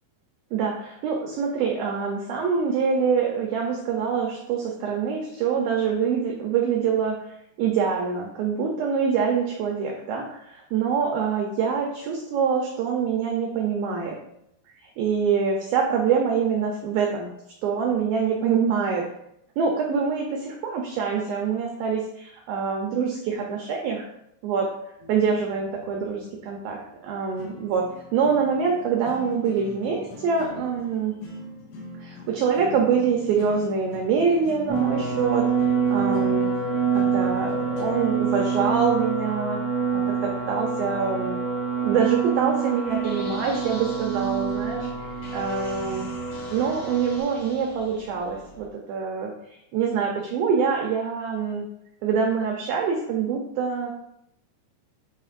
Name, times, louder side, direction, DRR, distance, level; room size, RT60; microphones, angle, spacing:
voice 1, 0.5-7.2 7.6-14.2 15.0-17.3 17.6-19.1 19.6-24.1 24.4-24.7 25.1-31.1 32.0-35.5 35.9-36.5 36.9-39.6 39.9-41.4 41.8-44.9 45.3-46.1 46.5-49.3 49.7-51.7 52.0-53.9, right 6 dB, 90° right, 1 dB, 2.0 m, -25 dB
sound 1, 25.0-39.0, left 1 dB, 85° left, 3.8 m, -42 dB
sound 2, 34.7-47.2, right 6 dB, ahead, 0.8 m, -26 dB
sound 3, 42.8-48.7, left 1 dB, 60° left, 2.5 m, -43 dB
10.0 x 4.4 x 2.5 m, 0.78 s
omnidirectional pair, 5.2 m